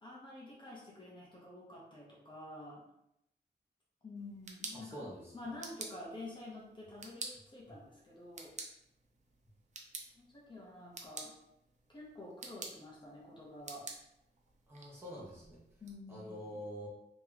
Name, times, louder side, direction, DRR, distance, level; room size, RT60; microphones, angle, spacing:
voice 1, 0.0-2.8 4.0-5.0 5.3-8.6 10.1-11.3 11.9-13.8 15.8-16.6, left 2 dB, 25° left, -5 dB, 0.8 m, -49 dB
sound 1, 4.2-15.9, right 3 dB, 40° right, 0.5 m, -50 dB
voice 2, 4.7-5.5 14.7-15.6 16.1-16.9, equal, 15° right, -6 dB, 1.0 m, -46 dB
3.0 x 2.9 x 3.9 m, 0.82 s
wide cardioid pair, 180°, 18 cm